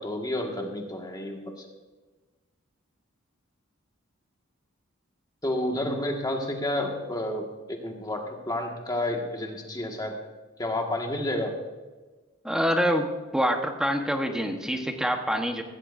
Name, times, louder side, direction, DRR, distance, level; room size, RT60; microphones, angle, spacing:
voice 1, 0.0-1.7 5.4-10.2 10.6-11.5, left 1 dB, 20° left, 1 dB, 1.8 m, -30 dB
voice 2, 12.4-15.6, equal, 5° right, 4 dB, 1.2 m, -26 dB
16.0 x 15.5 x 2.7 m, 1.2 s
head